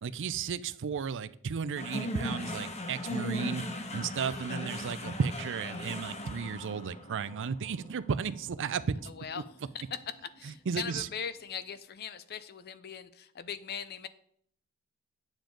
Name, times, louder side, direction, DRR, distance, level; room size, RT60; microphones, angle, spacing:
voice 1, 0.0-3.6 3.9-9.1 10.7-11.1, right 6 dB, 60° right, 15 dB, 0.5 m, -34 dB
sound 1, 1.7-10.2, left 1 dB, 30° left, 1.0 m, -39 dB
voice 2, 9.0-9.4 9.7-10.0 10.4-14.1, left 7 dB, 45° left, 13 dB, 0.6 m, -40 dB
9.0 x 7.2 x 3.8 m, 0.65 s
head